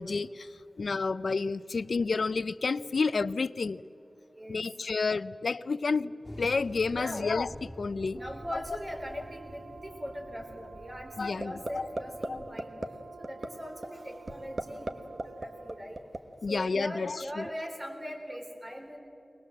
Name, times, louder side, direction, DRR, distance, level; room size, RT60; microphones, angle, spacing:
voice 1, 0.0-3.8 4.5-6.1 6.4-7.5 7.8-8.2 11.2-11.9 12.3-12.4 12.8-12.9 16.4-17.4, left 4 dB, 80° left, 17 dB, 0.4 m, -30 dB
sound 1, 6.2-12.5, left 1 dB, 10° left, 3.0 m, -48 dB
voice 2, 6.9-7.3 8.1-12.7 13.2-16.0 16.5-19.0, equal, 35° right, 3 dB, 4.3 m, -41 dB
Brass instrument, 8.1-15.9, right 4 dB, 85° right, 1.0 m, -50 dB
sound 2, 11.4-11.7 12.0-12.3 12.6-12.9 13.2-13.5 13.8-13.9 14.3-14.9 15.2-16.2, right 2 dB, 50° right, 1.4 m, -33 dB
23.0 x 20.0 x 7.6 m, 2.9 s
cardioid pair, 45°, 0 cm